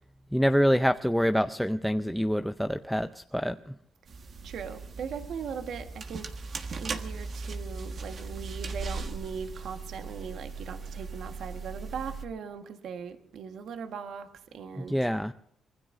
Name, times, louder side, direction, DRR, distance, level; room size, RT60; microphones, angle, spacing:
voice 1, 0.3-3.7 14.8-15.3, equal, ahead, 9 dB, 0.5 m, -26 dB
sound 1, 4.1-12.2, right 4 dB, 50° right, 1.5 m, -38 dB
voice 2, 4.4-6.3 6.8-15.0, right 6 dB, 70° right, 6 dB, 1.4 m, -39 dB
25.5 x 20.0 x 2.6 m, 0.70 s
cardioid pair, 90°, 0 cm